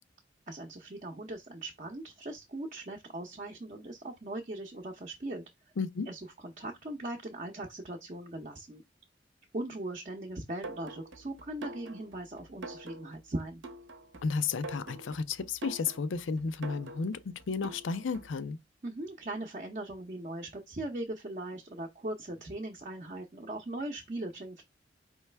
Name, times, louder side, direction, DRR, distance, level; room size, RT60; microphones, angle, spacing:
voice 1, 0.5-5.4 6.1-6.2 6.6-8.8 9.5-13.6 18.8-24.6, right 1 dB, 40° right, 0.7 m, -39 dB
voice 2, 5.8-6.1 14.2-18.6, left 5 dB, 90° left, 0.5 m, -33 dB
sound 1, 10.6-18.4, right 2 dB, 75° right, 0.8 m, -46 dB
4.7 x 3.1 x 3.3 m
head